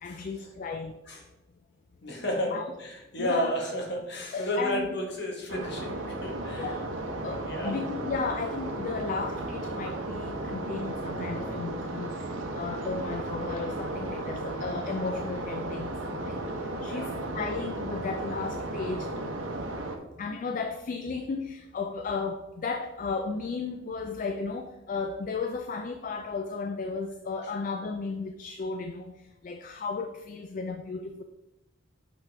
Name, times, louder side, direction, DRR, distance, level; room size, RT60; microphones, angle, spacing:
voice 1, 0.0-1.0 2.5-2.7 3.2-3.6 4.3-4.9 6.5-6.9 7.2-12.2 12.5-19.1 20.2-29.1 29.4-31.2, left 4 dB, 40° left, 7 dB, 0.3 m, -34 dB
voice 2, 2.0-6.7 7.4-7.8 16.9-17.1, equal, 55° left, 2 dB, 1.3 m, -32 dB
sound 1, 5.5-20.0, right 2 dB, 85° right, 0.8 m, -34 dB
6.0 x 5.7 x 3.3 m, 0.98 s
head